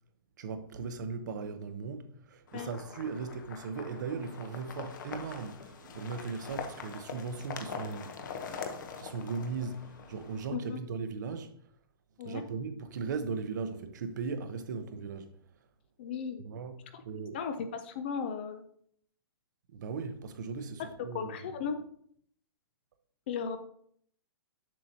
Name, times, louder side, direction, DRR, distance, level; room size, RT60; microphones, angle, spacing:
voice 1, 0.4-11.5 12.2-15.3 16.4-17.4 19.7-21.4, right 5 dB, 50° right, 0.8 m, -38 dB
sound 1, 2.5-10.5, left 6 dB, 50° left, 0.9 m, -43 dB
voice 2, 16.0-16.4 16.9-17.0 17.3-18.6 21.1-21.8 23.3-23.6, left 6 dB, 25° left, 0.4 m, -36 dB
7.5 x 6.6 x 2.8 m
hypercardioid pair, 175°, 13 cm